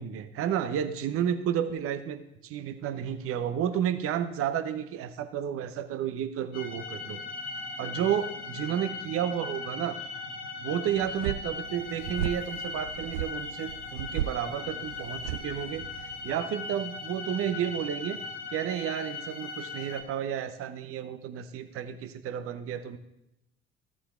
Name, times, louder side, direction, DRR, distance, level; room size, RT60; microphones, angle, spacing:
voice 1, 0.0-7.2 7.8-10.0 10.6-18.2 18.5-23.0, right 9 dB, 45° right, 10 dB, 0.9 m, -31 dB
sound 1, 6.5-20.0, left 4 dB, 70° left, 1.5 m, -39 dB
sound 2, 10.9-16.3, right 11 dB, 70° right, 0.5 m, -36 dB
15.5 x 7.4 x 2.5 m, 0.86 s
figure-of-eight pair, 55°, 31 cm